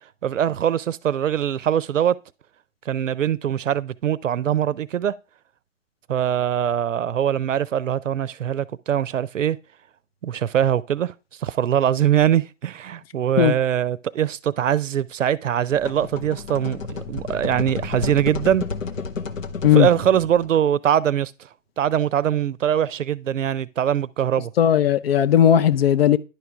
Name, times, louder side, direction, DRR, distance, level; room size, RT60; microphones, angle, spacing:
voice 1, 0.2-2.2 2.9-5.1 6.1-9.6 10.2-11.1 11.4-18.6 19.7-21.3 21.8-24.5, right 10 dB, 75° right, 0.6 m, -22 dB
sound 1, 15.7-20.6, left 5 dB, 85° left, 0.8 m, -31 dB
voice 2, 24.6-26.2, left 10 dB, 50° left, 0.6 m, -16 dB
10.5 x 4.8 x 3.4 m
figure-of-eight pair, 125°, 38 cm